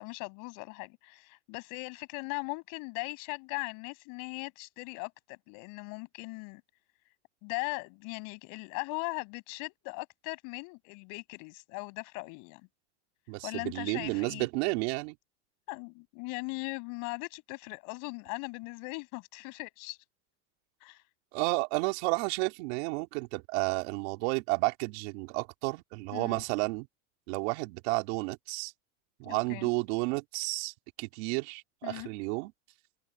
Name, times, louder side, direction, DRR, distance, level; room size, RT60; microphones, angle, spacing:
voice 1, 0.0-6.6 7.4-12.6 13.4-14.5 15.7-20.0 20.8-21.0 26.1-26.4 29.2-29.7 31.8-32.1, left 33 dB, 60° left, 7.4 m, -39 dB
voice 2, 13.3-15.2 21.3-26.9 27.3-28.7 29.2-32.5, right 27 dB, 65° right, 3.7 m, -32 dB
supercardioid pair, 125°, 35 cm